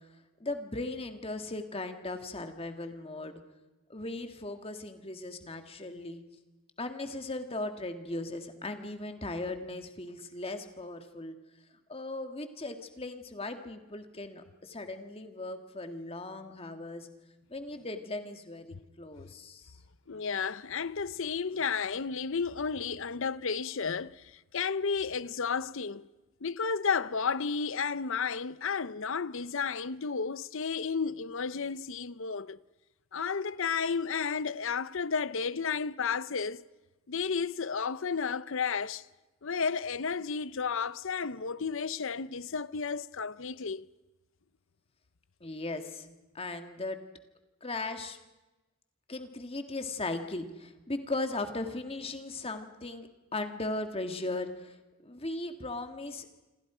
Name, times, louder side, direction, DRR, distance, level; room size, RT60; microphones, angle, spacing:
voice 1, 0.4-3.4 3.9-6.2 6.8-11.4 11.9-17.1 17.5-19.8 45.4-46.1 46.3-47.0 47.6-48.2 49.1-54.8 55.0-56.3, left 2 dB, 25° left, 1.9 m, -38 dB
voice 2, 20.1-26.1 26.4-32.6 33.1-36.6 37.1-39.0 39.4-43.9, left 5 dB, 60° left, 0.7 m, -32 dB
27.5 x 26.0 x 5.0 m
head